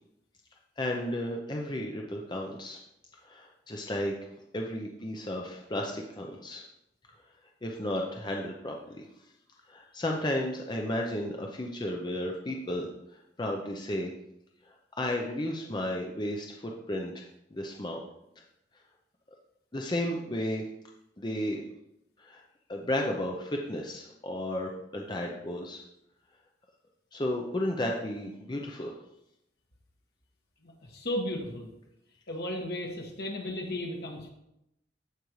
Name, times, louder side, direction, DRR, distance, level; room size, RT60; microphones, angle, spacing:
voice 1, 0.8-2.8 3.2-4.1 4.5-6.6 7.6-9.1 9.7-12.9 13.4-14.1 15.0-17.2 17.5-18.0 19.7-20.6 21.2-21.6 22.2-22.4 22.7-25.8 27.1-28.9, left 1 dB, 25° left, 1 dB, 0.7 m, -33 dB
voice 2, 30.6-31.7 32.3-34.3, left 1 dB, 60° left, 0 dB, 1.7 m, -35 dB
14.5 x 5.2 x 3.2 m, 0.83 s
head